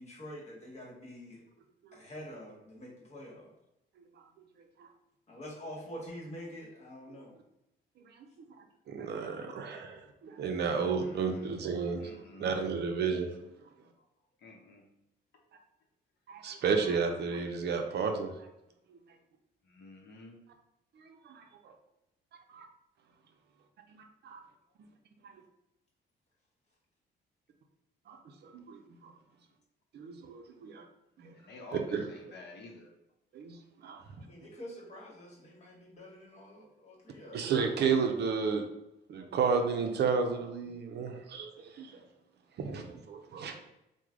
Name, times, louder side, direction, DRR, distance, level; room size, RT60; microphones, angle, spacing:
voice 1, 0.0-1.4 1.9-3.5 5.3-7.3 34.2-37.8, equal, 35° left, -3 dB, 1.2 m, -46 dB
voice 2, 8.9-12.1 12.4-13.3 16.3-18.3 21.3-21.7 22.5-22.7 23.9-24.4 25.2-25.3 28.1-28.2 28.4-29.1 29.9-30.8 31.2-31.3 31.9-32.0 33.3-33.5 33.8-34.0 37.3-38.6 39.1-42.0 42.6-43.6, right 5 dB, 60° right, 4 dB, 0.5 m, -32 dB
voice 3, 10.7-11.5 12.0-12.5 13.3-13.5 14.4-14.8 19.7-20.4 31.3-32.9, left 2 dB, 60° left, 0 dB, 0.7 m, -50 dB
3.1 x 2.1 x 3.6 m, 0.86 s
cardioid pair, 90°, 20 cm